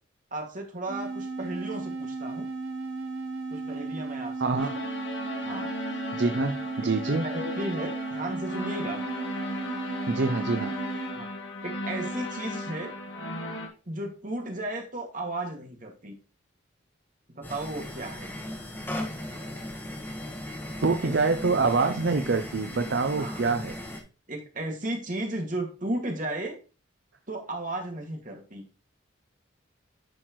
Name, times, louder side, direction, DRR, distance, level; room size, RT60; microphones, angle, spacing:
voice 1, 0.3-2.5 3.5-4.6 5.4-5.7 7.0-9.0 11.1-11.3 11.6-12.9 13.9-16.2 17.3-18.3 21.0-21.1 23.1-23.4 24.3-26.6 27.3-28.6, right 1 dB, 40° right, 2 dB, 2.2 m, -34 dB
sound 1, 0.9-11.3, right 3 dB, 85° right, 0.9 m, -35 dB
voice 2, 4.4-4.8 6.1-7.2 10.1-10.8 20.8-23.7, right 3 dB, 60° right, 7 dB, 0.6 m, -26 dB
sound 2, 4.6-13.7, left 1 dB, 65° left, 1.9 m, -36 dB
sound 3, 17.4-24.0, left 1 dB, 10° left, 1.5 m, -37 dB
10.0 x 6.2 x 3.1 m, 0.34 s
head